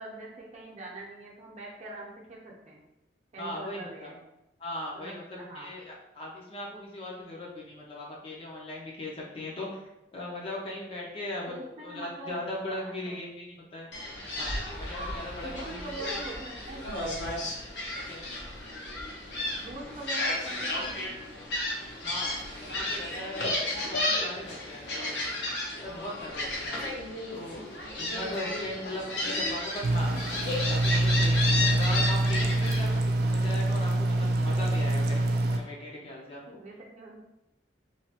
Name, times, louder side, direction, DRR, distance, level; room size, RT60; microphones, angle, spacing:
voice 1, 0.0-2.8 3.3-4.2 4.9-5.8 11.5-12.4 12.6-13.2 15.4-17.1 19.6-21.1 36.5-37.2, right 2 dB, 40° right, -3 dB, 0.7 m, -43 dB
voice 2, 3.4-4.1 4.6-9.8 10.1-13.9 14.3-16.1 18.1-18.3 22.0-25.4 25.8-26.7 27.3-27.7 28.0-30.2 30.7-32.9 33.2-36.4, left 1 dB, 30° left, -3 dB, 0.5 m, -39 dB
Gull seagull, 13.9-33.0, left 2 dB, 75° left, 0.7 m, -33 dB
sound 1, 29.8-35.6, right 1 dB, 60° right, 0.3 m, -25 dB
3.1 x 2.3 x 2.8 m, 0.90 s
head